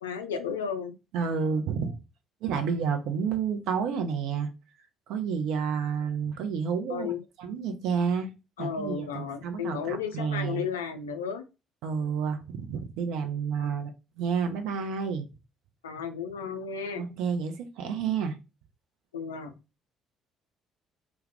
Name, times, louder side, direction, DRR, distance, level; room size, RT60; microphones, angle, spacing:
voice 1, 0.0-0.9 6.9-7.2 8.6-11.4 13.6-13.7 15.8-17.0 19.1-19.5, left 6 dB, 75° left, 7 dB, 0.4 m, -33 dB
voice 2, 1.1-2.0 2.4-4.5 5.1-7.1 7.4-8.3 8.6-10.6 11.8-13.9 14.2-15.3 17.0-18.4, right 6 dB, 60° right, 5 dB, 0.5 m, -30 dB
2.2 x 2.0 x 3.2 m, 0.27 s
figure-of-eight pair, 50°, 0 cm